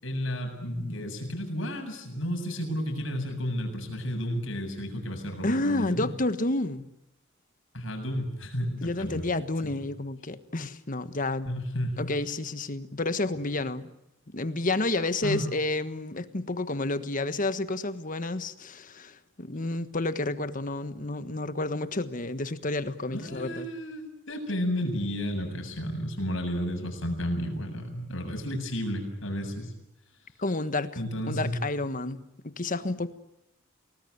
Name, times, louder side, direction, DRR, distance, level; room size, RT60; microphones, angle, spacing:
voice 1, 0.0-6.1 7.7-9.2 9.6-9.7 11.5-12.1 15.2-15.5 23.1-29.7 31.0-31.6, equal, 70° left, 5 dB, 7.5 m, -32 dB
voice 2, 5.4-6.9 8.8-11.5 12.0-13.9 14.3-23.7 30.4-31.0 31.3-33.1, left 2 dB, 40° left, 12 dB, 1.4 m, -30 dB
29.5 x 19.5 x 9.5 m, 0.86 s
head